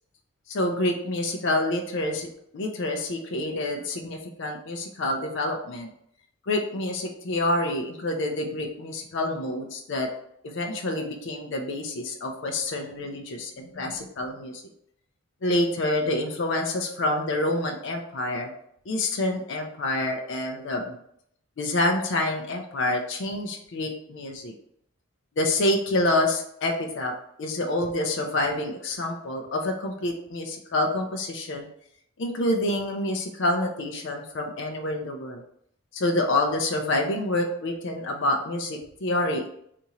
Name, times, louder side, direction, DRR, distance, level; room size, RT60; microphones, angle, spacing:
voice 1, 0.5-5.9 6.4-10.1 10.4-14.6 15.4-18.5 18.9-21.0 21.6-24.5 25.4-31.7 32.2-35.4 35.9-39.5, left 1 dB, 55° left, 3 dB, 0.4 m, -27 dB
2.8 x 2.5 x 4.1 m, 0.70 s
head